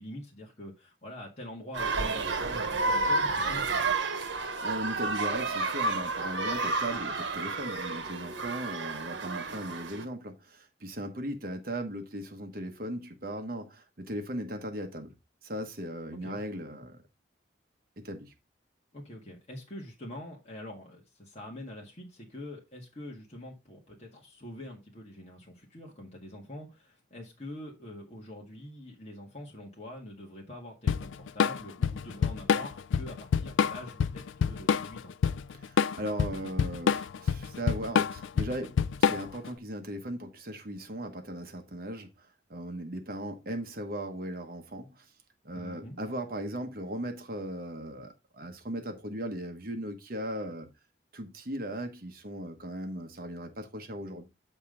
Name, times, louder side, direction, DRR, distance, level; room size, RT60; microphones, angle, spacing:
voice 1, 0.0-4.0 16.2-16.4 18.9-35.1 45.5-46.0, left 1 dB, 35° left, 1.7 m, -45 dB
sound 1, 1.7-10.0, right 3 dB, 80° right, 1.2 m, -31 dB
voice 2, 4.6-15.1 15.4-17.0 18.0-18.3 35.5-45.1 45.4-50.7 51.1-54.2, right 1 dB, 50° right, 1.2 m, -38 dB
Drum kit / Drum, 30.9-39.5, left 6 dB, 80° left, 0.3 m, -27 dB
8.7 x 5.3 x 3.8 m
head